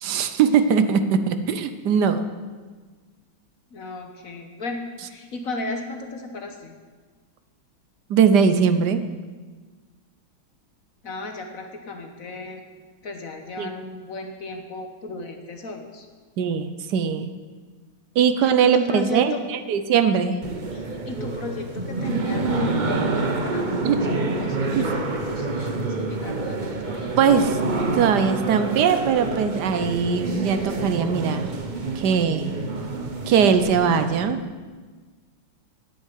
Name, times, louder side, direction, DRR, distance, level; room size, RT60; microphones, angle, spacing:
voice 1, 0.0-2.3 8.1-9.0 13.6-13.7 16.4-17.3 18.1-20.4 23.8-24.0 24.7-24.9 27.2-27.6 27.9-31.5 32.0-32.5 33.3-34.4, right 6 dB, 65° right, 10 dB, 1.2 m, -20 dB
voice 2, 3.7-6.8 11.0-12.6 13.0-16.1 18.4-19.4 20.7-23.9 24.2-27.3, left 2 dB, 50° left, 5 dB, 1.3 m, -35 dB
sound 1, 20.4-34.3, right 3 dB, 35° right, 0.8 m, -27 dB
9.4 x 8.3 x 9.3 m, 1.4 s
omnidirectional pair, 2.1 m